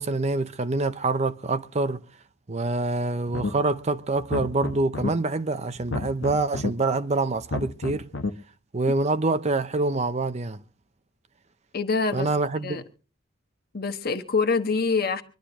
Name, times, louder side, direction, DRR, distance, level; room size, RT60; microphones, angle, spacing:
voice 1, 0.0-2.0 2.5-8.1 8.7-10.6 12.1-12.8, right 3 dB, 35° right, 0.6 m, -26 dB
sound 1, 3.3-3.8 4.2-5.1 5.8-6.7 7.4-8.3, left 3 dB, 80° left, 1.0 m, -31 dB
voice 2, 11.7-12.3 12.6-12.8 13.7-15.2, left 4 dB, 50° left, 1.3 m, -25 dB
24.5 x 11.5 x 3.0 m
head